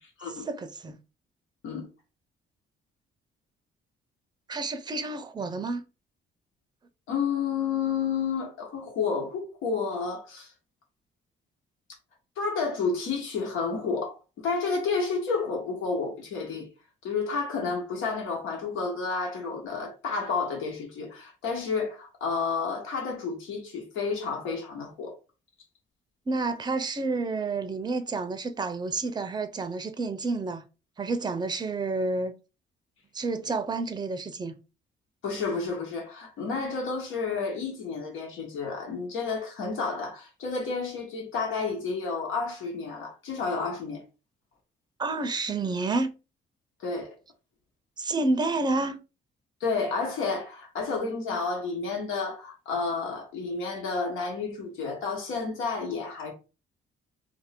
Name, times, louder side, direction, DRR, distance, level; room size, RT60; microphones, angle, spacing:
voice 1, 0.4-1.0 4.5-5.8 26.3-30.6 31.0-32.3 33.1-34.5 45.0-46.1 48.0-49.0, right 3 dB, 20° right, 0.5 m, -29 dB
voice 2, 7.1-10.5 12.4-16.7 17.0-25.1 35.2-44.0 46.8-47.1 49.6-56.3, left 4 dB, 85° left, 1.4 m, -30 dB
2.8 x 2.6 x 4.2 m
cardioid pair, 90°, 20 cm